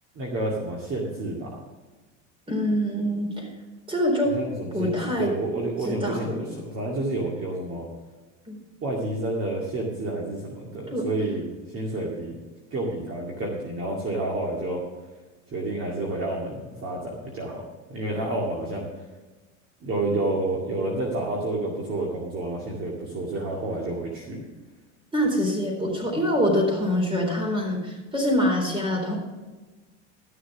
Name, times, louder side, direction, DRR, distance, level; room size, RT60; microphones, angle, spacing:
voice 1, 0.2-1.6 4.3-7.9 8.8-12.4 12.7-14.8 15.5-17.6 17.9-18.9 19.8-24.4, right 2 dB, 40° right, -2 dB, 2.2 m, -29 dB
voice 2, 2.5-3.5 3.9-4.4 4.7-5.3 5.8-6.5 8.5-8.6 10.9-11.1 25.1-29.2, equal, 15° right, 1 dB, 4.0 m, -25 dB
13.0 x 6.7 x 6.0 m, 1.2 s
supercardioid pair, 115°, 35 cm